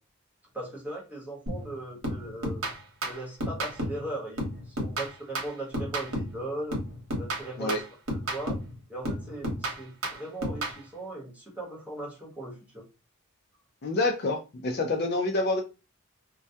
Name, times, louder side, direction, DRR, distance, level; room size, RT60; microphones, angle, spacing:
voice 1, 0.5-2.6 3.1-6.8 7.2-7.8 8.3-8.6 8.9-12.8, right 1 dB, 5° right, -4 dB, 0.9 m, -38 dB
sound 1, 1.5-1.7 2.0-4.1 4.4-6.4 6.7-8.7 9.0-10.8, equal, 75° right, 0.9 m, -32 dB
voice 2, 13.8-15.6, left 2 dB, 45° left, 3 dB, 0.4 m, -27 dB
2.2 x 2.1 x 2.7 m, 0.29 s
head